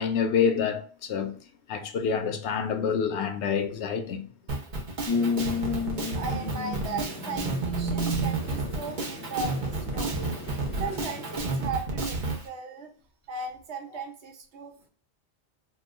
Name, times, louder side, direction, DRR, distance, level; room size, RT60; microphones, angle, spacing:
voice 1, 0.0-1.4 1.7-4.3, left 6 dB, 80° left, 0.8 m, -27 dB
Drum kit, 4.5-12.4, right 2 dB, 50° right, 0.8 m, -31 dB
sound 1, 5.0-11.7, left 2 dB, 35° left, 0.7 m, -32 dB
voice 2, 6.1-10.4 10.8-12.9 13.3-14.9, right 4 dB, 80° right, 1.1 m, -37 dB
2.9 x 2.1 x 3.5 m
omnidirectional pair, 1.1 m